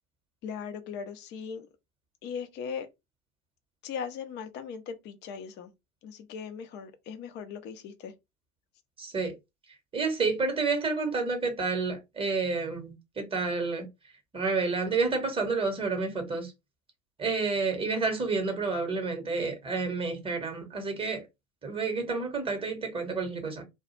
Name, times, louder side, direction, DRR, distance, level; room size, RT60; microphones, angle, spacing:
voice 1, 0.4-1.7 2.2-2.9 3.8-5.7 6.0-8.1, left 6 dB, 25° left, 0.4 m, -38 dB
voice 2, 9.0-9.3 9.9-13.9 14.3-16.5 17.2-21.3 21.6-23.6, right 4 dB, 15° right, 0.9 m, -29 dB
2.3 x 2.0 x 3.0 m
figure-of-eight pair, 85°, 41 cm